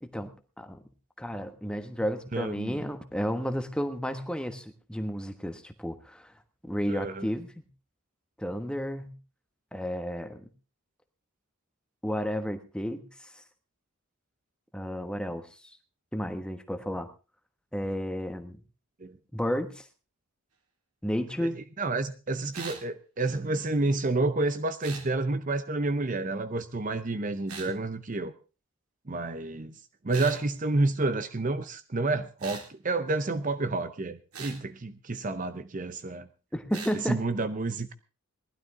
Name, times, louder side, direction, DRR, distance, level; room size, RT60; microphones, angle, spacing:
voice 1, 1.2-6.3 6.6-7.6 8.4-9.1 9.7-10.5 12.0-13.4 14.7-15.7 16.1-17.1 17.7-18.6 19.3-19.9 21.0-21.6 36.5-37.2, equal, 5° left, 8 dB, 1.2 m, -32 dB
voice 2, 2.3-2.8 6.9-7.3 19.0-19.2 21.4-21.5 21.8-28.3 29.1-29.8 30.0-36.3 37.1-37.9, right 2 dB, 35° right, 11 dB, 0.7 m, -29 dB
sound 1, 22.5-22.8 24.8-25.1 27.5-27.7 30.1-30.4 32.4-32.7 34.3-34.6 36.7-37.0, right 5 dB, 80° right, 3.9 m, -40 dB
19.0 x 12.0 x 3.7 m, 0.33 s
head